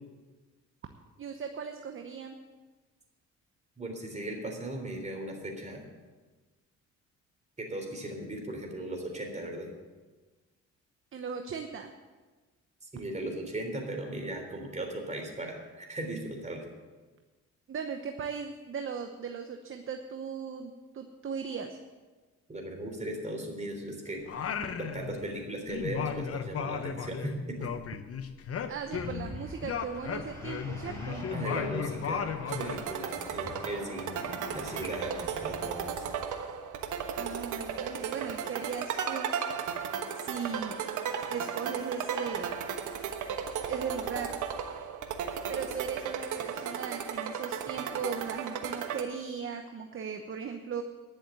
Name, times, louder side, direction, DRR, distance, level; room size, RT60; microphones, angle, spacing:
voice 1, 1.2-2.4 11.1-11.9 17.7-21.8 28.7-31.3 37.1-39.3 40.2-40.8 41.3-42.5 43.7-44.4 45.5-50.8, right 6 dB, 45° right, 5 dB, 1.0 m, -37 dB
voice 2, 3.8-5.8 7.6-9.7 12.8-16.6 22.5-24.3 24.8-27.7 31.1-36.1, right 1 dB, 25° right, 2 dB, 3.6 m, -37 dB
Singing, 24.3-25.4 25.7-29.3 29.6-32.8, left 7 dB, 50° left, 0.9 m, -35 dB
sound 1, 28.9-36.1, left 1 dB, 10° left, 5.1 m, -45 dB
sound 2, 32.5-49.0, right 7 dB, 80° right, 1.2 m, -35 dB
11.0 x 7.2 x 9.1 m, 1.3 s
cardioid pair, 90°, 30 cm